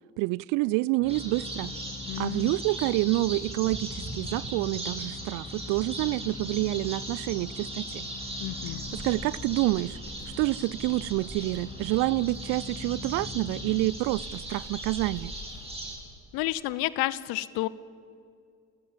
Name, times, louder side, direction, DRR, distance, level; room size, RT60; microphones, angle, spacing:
voice 1, 0.2-1.7 2.2-8.0 8.9-10.0 10.3-15.3, right 20 dB, 50° right, 0.4 m, -28 dB
sound 1, 1.0-14.4, left 5 dB, 20° left, 1.3 m, -44 dB
sound 2, 1.1-16.0, right 1 dB, 15° right, 5.1 m, -39 dB
voice 2, 2.1-2.5 8.4-8.8 16.3-17.7, left 17 dB, 55° left, 0.8 m, -30 dB
Wind, 8.6-16.3, right 1 dB, 30° right, 4.9 m, -47 dB
29.5 x 15.5 x 7.3 m
figure-of-eight pair, 50°, 43 cm